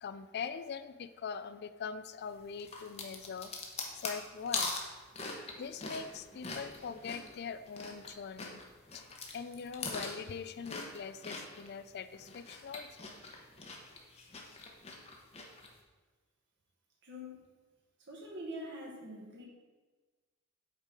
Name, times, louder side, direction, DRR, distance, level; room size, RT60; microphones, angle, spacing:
voice 1, 0.0-3.5 4.0-4.7 5.5-8.6 8.9-13.1, left 6 dB, 50° left, 13 dB, 0.4 m, -42 dB
sound 1, 2.6-8.1 8.4-11.7 12.1-15.7, left 3 dB, 30° left, 0.9 m, -41 dB
voice 2, 17.0-17.5 18.0-19.4, equal, 55° right, -2 dB, 1.6 m, -44 dB
8.0 x 4.1 x 5.1 m, 1.3 s
head